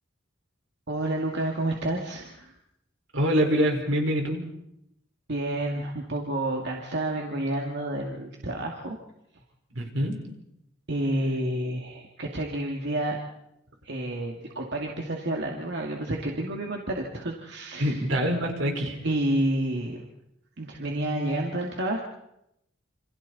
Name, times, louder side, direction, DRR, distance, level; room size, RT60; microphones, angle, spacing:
voice 1, 0.9-2.5 5.3-9.0 10.9-13.2 13.8-18.0 19.0-20.1 20.6-22.0, right 1 dB, 60° right, 0 dB, 2.4 m, -29 dB
voice 2, 3.1-4.4 9.7-10.1 17.8-19.0, equal, 75° right, 2 dB, 4.9 m, -25 dB
28.5 x 27.0 x 4.2 m, 0.81 s
head